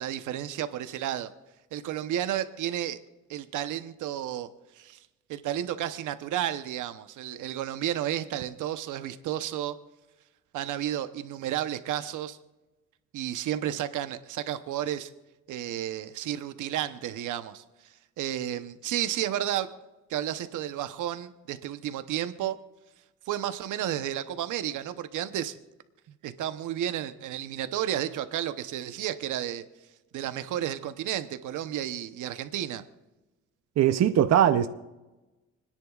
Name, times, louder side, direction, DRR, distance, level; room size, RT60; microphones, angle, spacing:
voice 1, 0.0-1.3 1.7-3.0 3.3-4.5 4.8-5.0 5.3-9.8 10.5-12.4 13.1-15.1 15.5-19.7 20.1-22.6 23.3-25.6 26.2-29.6 30.1-32.8, right 11 dB, 85° right, 0.9 m, -32 dB
voice 2, 33.8-34.7, right 10 dB, 60° right, 0.7 m, -20 dB
29.5 x 10.5 x 2.4 m
cardioid pair, 90°, 30 cm